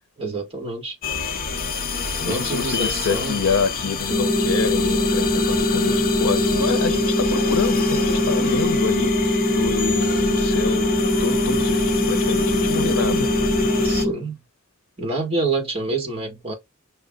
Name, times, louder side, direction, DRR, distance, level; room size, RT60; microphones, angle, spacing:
voice 1, 0.2-1.0 2.2-3.4 13.8-14.4 15.0-16.5, right 3 dB, 30° right, 1.7 m, -27 dB
sound 1, 1.0-14.0, left 4 dB, 45° left, 0.7 m, -28 dB
voice 2, 2.2-10.9 11.2-13.3, left 5 dB, 90° left, 0.6 m, -27 dB
sound 2, 4.1-14.1, left 1 dB, 5° left, 1.1 m, -21 dB
5.6 x 2.1 x 3.6 m
head